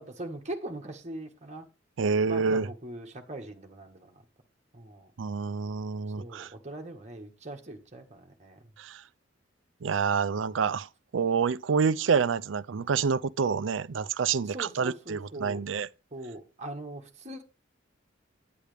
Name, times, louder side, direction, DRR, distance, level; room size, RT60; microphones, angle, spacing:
voice 1, 0.0-1.7 2.3-4.2 4.7-5.1 6.2-8.6 14.4-15.6 16.1-17.4, right 1 dB, 35° right, 1.6 m, -41 dB
voice 2, 2.0-2.7 5.2-6.5 8.8-9.0 9.8-10.9 11.1-15.9, right 5 dB, 80° right, 0.5 m, -27 dB
10.0 x 9.4 x 3.4 m
head